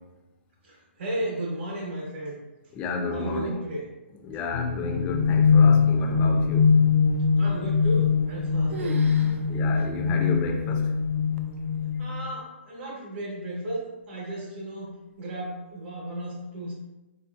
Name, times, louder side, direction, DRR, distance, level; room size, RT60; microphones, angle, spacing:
voice 1, 0.6-2.4 3.1-3.9 7.4-9.0 12.0-16.8, right 1 dB, 55° right, -4 dB, 1.0 m, -34 dB
voice 2, 2.7-3.6 4.2-6.7 9.5-10.8, left 3 dB, 20° left, 2 dB, 0.4 m, -31 dB
sound 1, 4.5-12.3, left 5 dB, 70° left, 0.6 m, -22 dB
sound 2, 7.9-8.4 8.7-9.4 9.8-9.9 10.5-10.6 11.4-11.8, right 4 dB, 75° right, 0.4 m, -37 dB
4.2 x 2.7 x 2.4 m, 1.1 s
hypercardioid pair, 155°, 7 cm